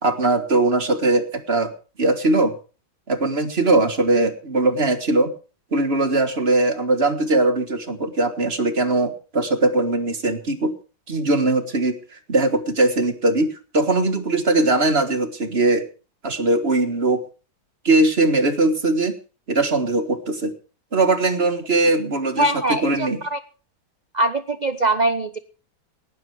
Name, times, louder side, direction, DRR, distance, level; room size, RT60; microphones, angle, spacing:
voice 1, 0.0-1.7 2.0-2.5 3.1-5.3 5.7-10.8 11.1-12.0 12.3-15.8 16.2-17.2 17.8-19.2 19.5-20.5 20.9-22.5 22.8-23.2, right 2 dB, 35° right, 9 dB, 1.6 m, -20 dB
voice 2, 22.4-23.4 24.1-25.4, right 2 dB, 70° right, 13 dB, 0.4 m, -22 dB
18.5 x 12.0 x 4.7 m, 0.36 s
omnidirectional pair, 1.9 m